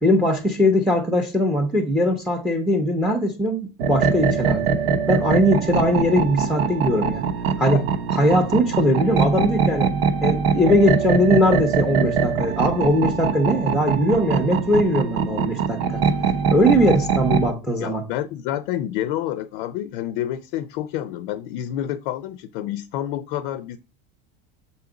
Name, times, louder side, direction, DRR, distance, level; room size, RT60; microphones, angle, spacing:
voice 1, 0.0-4.7 5.1-7.2 7.6-7.8 8.1-9.9 10.2-16.0 16.5-18.0, equal, ahead, 0.6 m, -20 dB
sound 1, 3.8-17.5, right 5 dB, 80° right, 1.0 m, -23 dB
voice 2, 17.8-23.8, left 12 dB, 60° left, 0.6 m, -28 dB
7.1 x 4.3 x 3.8 m
supercardioid pair, 165°, 29 cm